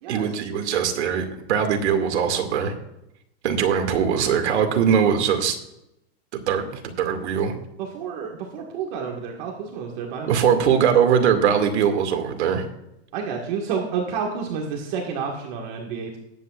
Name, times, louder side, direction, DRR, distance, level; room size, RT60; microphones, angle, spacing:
voice 1, 0.1-2.7 3.4-5.6 6.3-7.5 10.3-12.7, right 7 dB, 75° right, 5 dB, 2.3 m, -21 dB
voice 2, 7.8-10.5 13.1-16.2, right 6 dB, 40° right, 0 dB, 1.8 m, -30 dB
20.0 x 8.8 x 2.5 m, 0.83 s
supercardioid pair, 160°, 34 cm